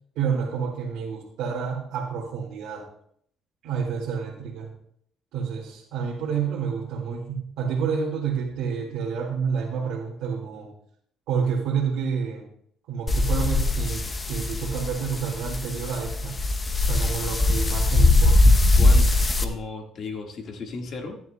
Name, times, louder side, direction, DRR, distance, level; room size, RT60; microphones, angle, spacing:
voice 1, 0.2-2.9 3.6-4.7 5.3-10.7 11.3-12.4 12.9-16.4 16.9-18.4, right 6 dB, 85° right, -5 dB, 1.9 m, -29 dB
sound 1, 13.1-19.4, left 2 dB, 20° left, 0.7 m, -21 dB
voice 2, 18.8-19.1 19.4-21.2, left 3 dB, 50° left, 3 dB, 1.6 m, -34 dB
14.0 x 10.5 x 2.2 m, 0.68 s
cardioid pair, 125°, 0 cm